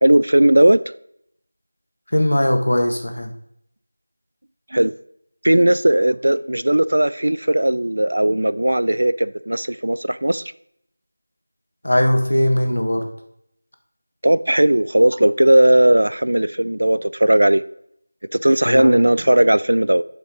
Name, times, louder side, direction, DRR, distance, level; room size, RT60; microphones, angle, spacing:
voice 1, 0.0-0.8 4.7-4.9 5.4-10.4 14.2-17.6 18.3-20.0, right 1 dB, 80° right, 0.4 m, -16 dB
voice 2, 2.1-3.3 11.8-13.1 18.6-19.1, left 1 dB, 85° left, 1.5 m, -19 dB
7.7 x 5.4 x 3.8 m
figure-of-eight pair, 175°, 0 cm